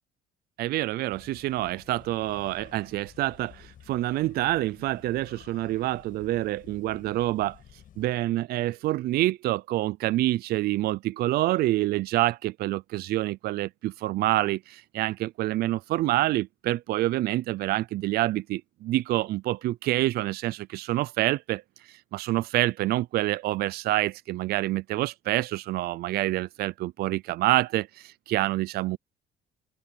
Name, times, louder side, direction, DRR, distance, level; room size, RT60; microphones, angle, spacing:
voice 1, 0.6-7.6 8.0-21.6 21.9-29.0, right 16 dB, 65° right, 0.5 m, -27 dB
sound 1, 1.1-8.1, left 10 dB, 55° left, 7.6 m, -52 dB
open air
cardioid pair, 110°, 17 cm